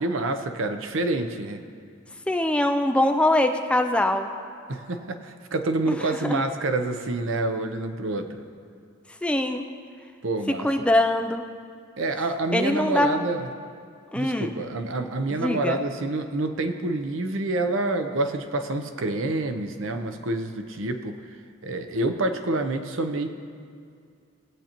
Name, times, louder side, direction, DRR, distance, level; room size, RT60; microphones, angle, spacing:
voice 1, 0.0-1.6 4.7-8.4 10.2-10.7 12.0-13.5 14.1-21.2 21.6-23.3, right 2 dB, 75° right, 7 dB, 0.7 m, -27 dB
voice 2, 2.3-4.3 5.9-6.0 6.2-6.4 9.2-9.6 10.6-11.4 12.5-13.2 14.1-14.5 15.3-15.8, left 1 dB, 5° left, 5 dB, 0.4 m, -23 dB
18.0 x 8.1 x 3.0 m, 2.3 s
head